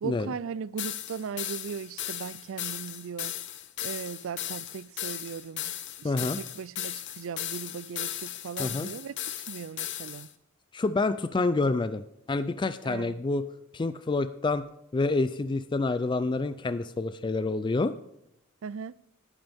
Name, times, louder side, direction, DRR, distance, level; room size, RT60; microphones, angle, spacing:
voice 1, 0.0-3.3 3.8-5.7 6.0-10.3 12.8-13.2 18.6-18.9, right 6 dB, 65° right, 0.4 m, -38 dB
sound 1, 0.8-10.3, left 12 dB, 60° left, 1.0 m, -36 dB
voice 2, 6.0-6.4 8.6-8.9 10.7-12.0 12.3-13.4 13.7-14.6 14.9-17.9, left 3 dB, 20° left, 0.4 m, -28 dB
14.0 x 11.5 x 3.5 m
head